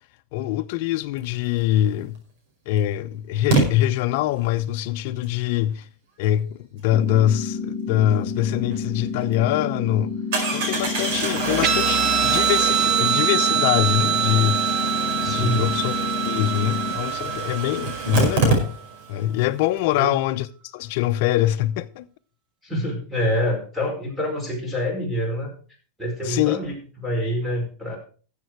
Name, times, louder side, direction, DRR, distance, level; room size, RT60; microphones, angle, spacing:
voice 1, 0.3-2.2 2.7-5.8 6.2-10.1 10.5-14.6 15.2-15.9 16.2-18.7 19.1-20.5 20.7-22.1 26.2-26.6, left 13 dB, 60° left, 0.8 m, -23 dB
Engine starting, 2.0-2.1 3.5-3.6 8.7-8.8 9.2-9.3 10.3-19.1 19.4-19.5 19.7-19.8, right 4 dB, 60° right, 5.0 m, -27 dB
sound 1, 6.9-16.9, left 5 dB, 15° left, 1.6 m, -30 dB
Guitar, 11.6-18.5, right 9 dB, 35° right, 1.1 m, -24 dB
voice 2, 15.2-15.7 19.9-20.1 22.6-25.5 26.0-28.0, equal, ahead, 4.8 m, -26 dB
13.5 x 7.6 x 4.6 m
supercardioid pair, 145°, 0 cm